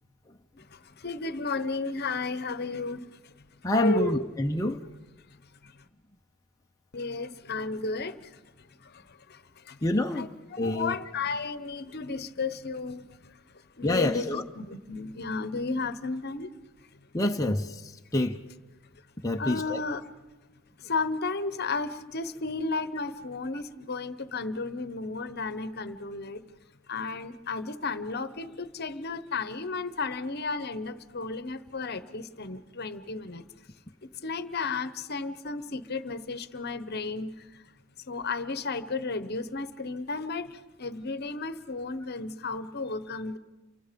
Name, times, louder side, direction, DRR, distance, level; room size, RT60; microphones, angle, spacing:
voice 1, 0.7-3.3 3.7-4.2 5.6-5.7 6.9-8.4 8.8-9.8 10.1-13.0 13.8-16.5 19.4-20.0 20.8-26.4 26.9-33.4 34.0-37.6 38.1-43.4, left 3 dB, 50° left, 1.0 m, -33 dB
voice 2, 3.6-4.8 9.8-10.3 10.6-10.9 13.8-14.4 17.1-17.8 18.1-18.4 19.2-19.8, left 1 dB, 15° left, 0.7 m, -26 dB
29.0 x 24.5 x 5.2 m
head